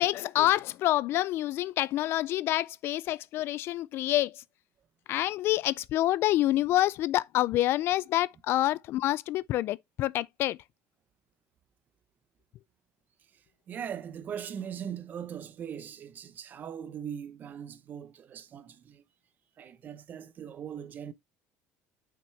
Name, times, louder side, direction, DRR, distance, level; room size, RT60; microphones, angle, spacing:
voice 1, 0.0-4.4 5.1-10.6, left 14 dB, 55° left, 0.3 m, -27 dB
voice 2, 13.7-19.0 19.6-21.1, right 8 dB, 40° right, 0.8 m, -40 dB
6.2 x 5.9 x 3.2 m
cardioid pair, 135°, 5 cm